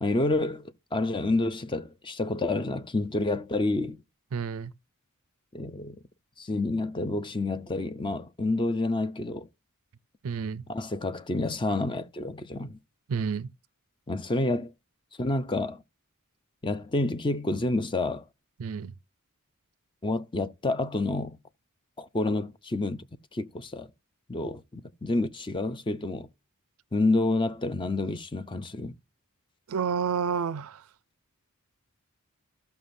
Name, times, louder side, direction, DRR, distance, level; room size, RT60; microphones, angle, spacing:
voice 1, 0.0-4.0 5.5-6.0 6.4-9.5 10.7-12.8 14.1-14.7 15.2-15.8 16.6-18.3 20.0-21.4 22.0-23.1 23.3-23.9 24.3-26.3 26.9-28.9, left 2 dB, 20° left, 0.6 m, -29 dB
voice 2, 4.3-4.7 10.2-10.6 13.1-13.5 18.6-18.9 29.7-30.8, right 6 dB, 70° right, 0.5 m, -30 dB
14.5 x 5.8 x 2.6 m
head